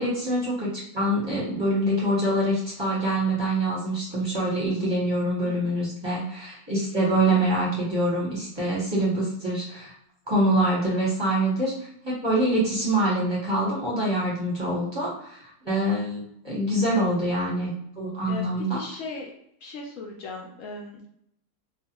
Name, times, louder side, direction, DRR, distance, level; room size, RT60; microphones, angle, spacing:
voice 1, 0.0-9.9 10.3-18.8, right 1 dB, 20° right, -8 dB, 0.8 m, -25 dB
voice 2, 18.7-19.3 19.6-21.1, left 3 dB, 70° left, 0 dB, 0.9 m, -37 dB
2.4 x 2.3 x 2.9 m, 0.71 s
omnidirectional pair, 1.6 m